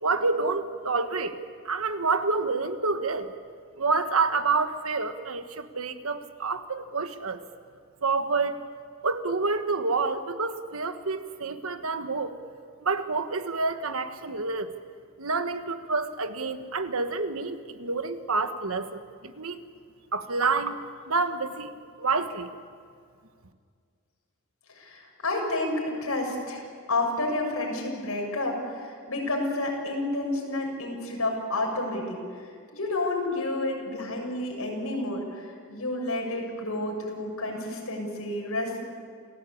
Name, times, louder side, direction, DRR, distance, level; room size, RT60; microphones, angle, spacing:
voice 1, 0.0-1.3 1.6-3.3 3.8-7.4 8.0-8.6 9.0-12.3 12.8-14.7 15.2-19.6 20.1-20.8 21.1-21.7 22.0-22.5, right 4 dB, 75° right, 9 dB, 1.4 m, -28 dB
voice 2, 24.7-38.9, left 2 dB, 85° left, 0 dB, 6.6 m, -30 dB
28.5 x 16.5 x 8.7 m, 2.1 s
head